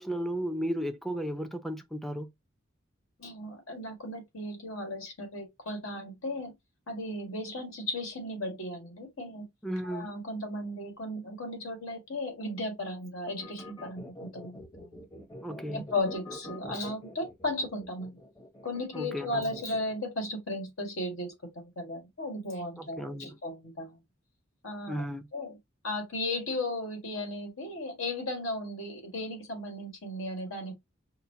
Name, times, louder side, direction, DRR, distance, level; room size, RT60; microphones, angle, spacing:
voice 1, 0.0-2.3 9.6-10.1 15.4-15.9 18.9-19.5 22.8-23.4 24.9-25.3, equal, ahead, 0.5 m, -34 dB
voice 2, 3.2-6.5 6.9-9.4 9.8-14.9 15.7-18.2 18.6-24.0 24.6-25.1 25.3-25.6 25.8-30.7, left 1 dB, 75° left, 1.8 m, -35 dB
sound 1, 13.3-20.0, left 1 dB, 20° left, 1.0 m, -45 dB
5.7 x 2.2 x 2.7 m
head